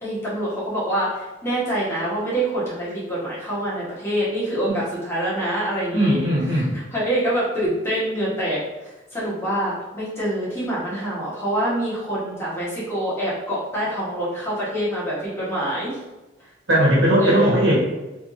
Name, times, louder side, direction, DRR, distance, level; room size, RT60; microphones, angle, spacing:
voice 1, 0.0-6.2 6.5-8.6 9.1-16.0 17.2-17.6, right 1 dB, 15° left, -9 dB, 1.3 m, -25 dB
voice 2, 5.9-6.7 16.7-17.8, equal, 70° right, -5 dB, 1.3 m, -18 dB
3.3 x 3.2 x 2.6 m, 1.1 s
head